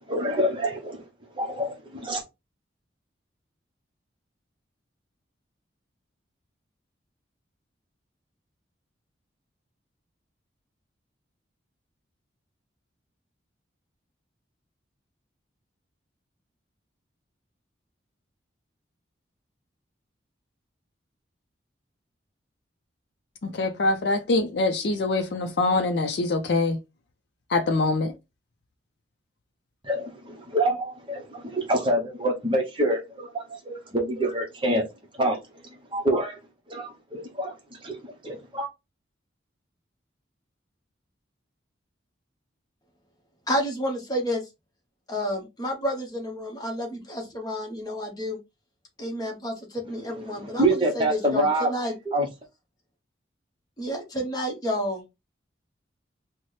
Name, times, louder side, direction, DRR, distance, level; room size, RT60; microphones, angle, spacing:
voice 1, 0.1-1.0 1.4-2.2 29.8-34.9 35.2-35.4 35.9-36.4 36.7-38.7 50.2-51.7 52.1-52.3, right 1 dB, 25° right, 0.7 m, -26 dB
voice 2, 23.4-26.8 27.5-28.1, left 2 dB, 60° left, 0.4 m, -24 dB
voice 3, 43.5-44.4 45.1-48.4 49.0-51.9 53.8-55.0, equal, 20° left, 0.9 m, -30 dB
4.0 x 2.0 x 3.1 m
head